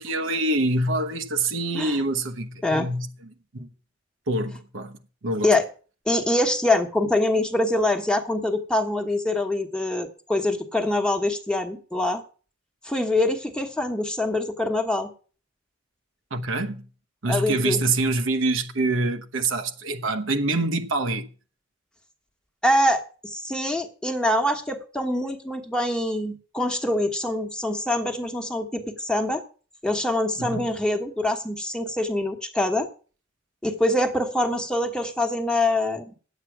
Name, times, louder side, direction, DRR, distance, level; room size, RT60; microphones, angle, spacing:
voice 1, 0.0-3.7 4.3-5.6 16.3-16.9 17.2-21.3 30.4-30.6, right 2 dB, 80° right, 1.0 m, -26 dB
voice 2, 6.1-12.2 12.8-15.1 17.3-17.8 22.6-29.4 29.8-32.9 33.6-36.1, left 1 dB, 5° left, 1.2 m, -24 dB
10.0 x 8.3 x 6.0 m
head